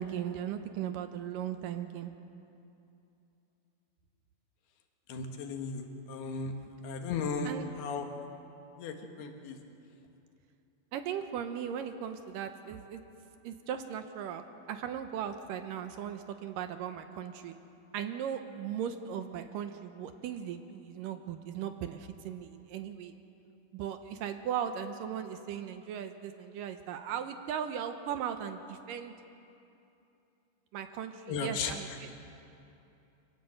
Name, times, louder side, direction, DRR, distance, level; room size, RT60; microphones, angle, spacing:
voice 1, 0.0-2.1 7.4-7.6 10.9-13.0 13.4-17.6 17.9-23.1 23.7-29.1 30.7-32.1, right 9 dB, 75° right, 8 dB, 2.3 m, -38 dB
voice 2, 5.1-6.5 6.8-8.1 8.8-9.6 31.3-31.8, left 4 dB, 90° left, 4 dB, 3.6 m, -36 dB
25.0 x 18.0 x 7.8 m, 2.8 s
omnidirectional pair, 4.4 m